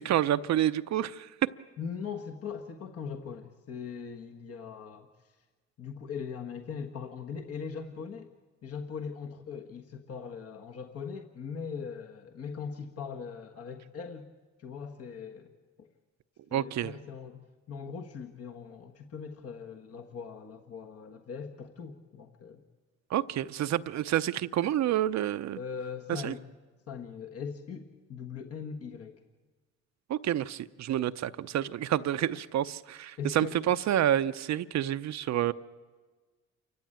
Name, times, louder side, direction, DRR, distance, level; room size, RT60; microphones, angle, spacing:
voice 1, 0.0-1.5 16.5-16.9 23.1-25.6 26.1-26.3 30.1-35.5, right 11 dB, 65° right, 12 dB, 0.7 m, -28 dB
voice 2, 1.8-5.3 5.8-8.3 8.6-14.3 14.6-15.5 15.8-15.9 16.5-22.6 25.5-26.4 26.9-29.2 33.2-33.8, left 6 dB, 50° left, 2 dB, 1.5 m, -40 dB
28.0 x 15.0 x 8.9 m, 1.4 s
cardioid pair, 90°, 30 cm